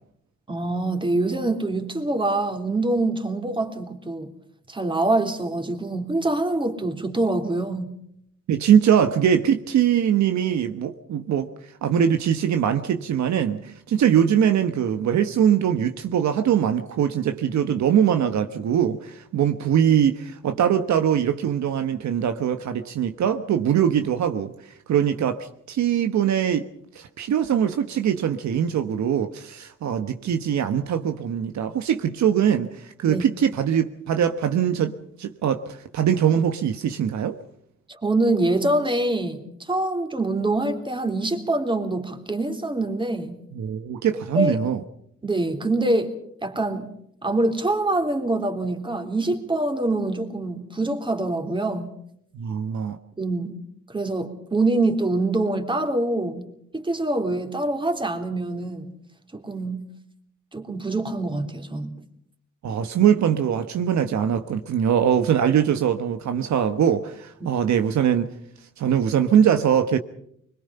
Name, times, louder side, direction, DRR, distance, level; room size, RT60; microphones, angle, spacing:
voice 1, 0.5-4.3 4.7-7.9 33.1-33.2 37.9-43.4 44.3-44.6 45.2-46.9 47.2-51.9 53.2-53.5 53.9-58.9 59.3-59.8 60.5-62.0 67.4-67.5, right 2 dB, 15° right, 3.5 m, -25 dB
voice 2, 8.5-11.5 11.8-24.5 24.9-26.7 26.9-37.4 43.5-44.8 52.3-53.0 62.6-68.3 68.8-70.0, right 9 dB, 65° right, 1.3 m, -22 dB
24.5 x 21.5 x 5.7 m
cardioid pair, 90°, 30 cm